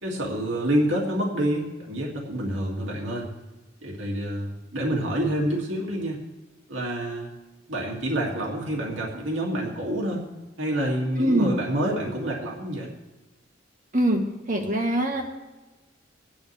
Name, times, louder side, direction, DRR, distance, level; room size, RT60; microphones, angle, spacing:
voice 1, 0.0-3.3 3.8-6.2 6.7-7.3 7.7-10.3 10.6-12.9, right 1 dB, 80° right, -2 dB, 2.6 m, -27 dB
voice 2, 11.2-11.5 13.9-14.2 14.5-15.2, right 1 dB, 45° right, 2 dB, 1.8 m, -22 dB
21.0 x 10.0 x 3.5 m, 1.1 s
head